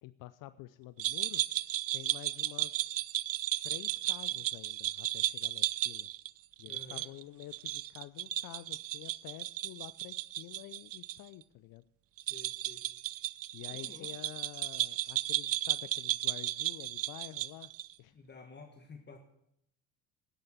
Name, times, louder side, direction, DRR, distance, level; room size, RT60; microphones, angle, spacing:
voice 1, 0.0-1.4 1.9-3.2 3.6-6.1 6.6-11.8 13.5-17.7 18.0-18.2, left 15 dB, 50° left, 15 dB, 0.6 m, -49 dB
sound 1, 1.0-11.2 11.4-11.5 12.2-17.9, right 14 dB, 35° right, 0.5 m, -34 dB
voice 2, 6.7-7.1 12.2-12.9 13.7-14.1 18.1-19.2, left 4 dB, 25° left, 4 dB, 1.6 m, -52 dB
11.5 x 9.7 x 7.8 m, 0.77 s
hypercardioid pair, 70°, 41 cm